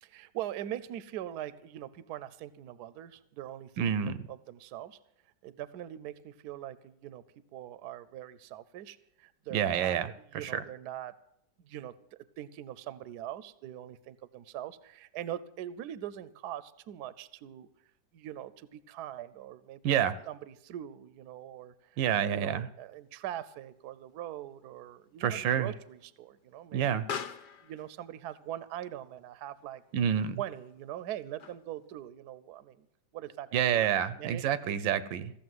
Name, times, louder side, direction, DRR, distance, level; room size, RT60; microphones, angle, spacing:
voice 1, 0.0-5.0 5.4-7.2 7.5-11.1 11.6-17.7 18.1-22.0 22.3-27.0 27.6-29.8 30.4-32.9 33.1-33.5 33.8-34.8, right 12 dB, 70° right, 16 dB, 1.1 m, -42 dB
voice 2, 3.8-4.2 9.5-10.1 10.3-10.6 19.8-20.1 22.0-22.7 25.2-25.7 26.7-27.0 29.9-30.4 33.5-35.3, right 9 dB, 85° right, 14 dB, 1.5 m, -28 dB
Explosion, 22.9-31.9, left 7 dB, 70° left, 1.4 m, -47 dB
15.5 x 7.1 x 9.4 m, 0.74 s
omnidirectional pair, 2.0 m